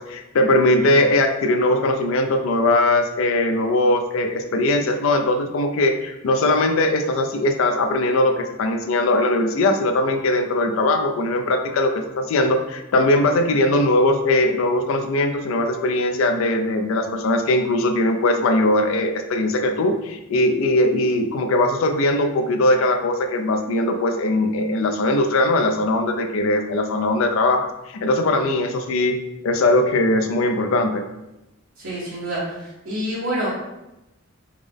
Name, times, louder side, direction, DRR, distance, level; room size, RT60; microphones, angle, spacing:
voice 1, 0.0-29.2 29.4-31.0, left 1 dB, 65° left, 5 dB, 0.4 m, -20 dB
voice 2, 31.8-33.5, right 1 dB, 85° right, -9 dB, 0.9 m, -27 dB
3.5 x 2.0 x 3.4 m, 0.94 s
head